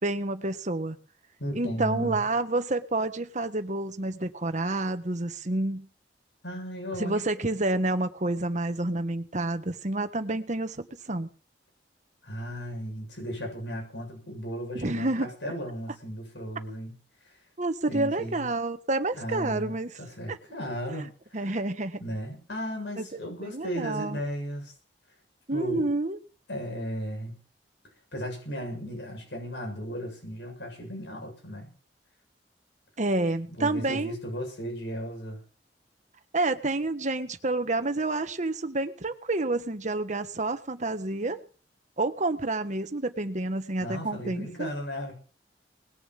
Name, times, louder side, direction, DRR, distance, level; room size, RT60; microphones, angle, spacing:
voice 1, 0.0-1.0 1.5-5.9 7.0-11.3 14.7-15.3 17.6-19.9 20.3-20.4 20.9-21.1 21.3-22.0 23.0-23.1 23.4-24.2 25.5-26.2 33.0-34.2 36.3-41.4 42.0-44.7, right 2 dB, 45° right, 9 dB, 1.4 m, -29 dB
voice 2, 1.4-2.2 6.4-7.2 12.2-17.0 17.2-17.3 17.9-18.5 19.2-21.1 21.3-21.6 22.0-24.7 25.5-26.0 26.5-27.4 28.1-31.7 33.6-35.4 43.8-45.1, equal, 80° left, 2 dB, 7.2 m, -35 dB
20.0 x 7.0 x 7.6 m, 0.39 s
head